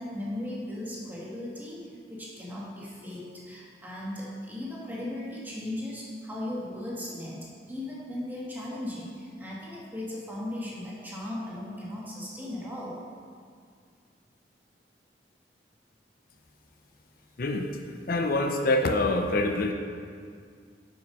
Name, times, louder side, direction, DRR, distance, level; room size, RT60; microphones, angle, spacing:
voice 1, 0.0-13.0, left 1 dB, 10° right, -6 dB, 1.5 m, -37 dB
voice 2, 17.4-17.7 18.1-19.7, left 2 dB, 55° left, 4 dB, 0.6 m, -25 dB
7.8 x 5.9 x 5.4 m, 2.1 s
head